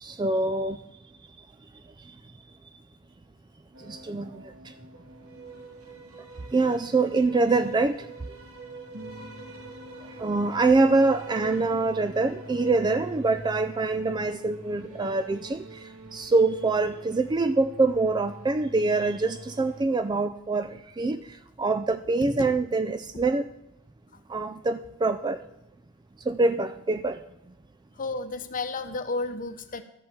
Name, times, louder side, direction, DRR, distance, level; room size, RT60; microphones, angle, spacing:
voice 1, 0.0-0.8 3.9-4.3 6.5-8.0 10.2-15.6 16.1-21.2 21.6-23.5 24.3-25.4 26.3-27.2, right 3 dB, 20° right, 11 dB, 0.3 m, -24 dB
sound 1, 3.7-19.9, right 2 dB, 85° right, 1.8 m, -44 dB
voice 2, 28.0-29.8, left 3 dB, 40° left, 9 dB, 0.9 m, -32 dB
13.0 x 5.6 x 8.5 m, 0.86 s
head